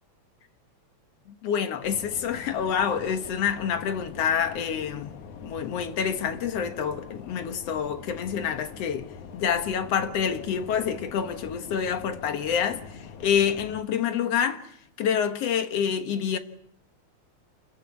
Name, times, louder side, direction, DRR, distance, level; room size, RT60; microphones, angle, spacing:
voice 1, 1.4-5.1 5.4-16.4, left 7 dB, 60° left, 2.3 m, -27 dB
sound 1, 1.8-13.8, left 6 dB, 90° left, 3.0 m, -44 dB
28.0 x 14.5 x 8.4 m
omnidirectional pair, 3.3 m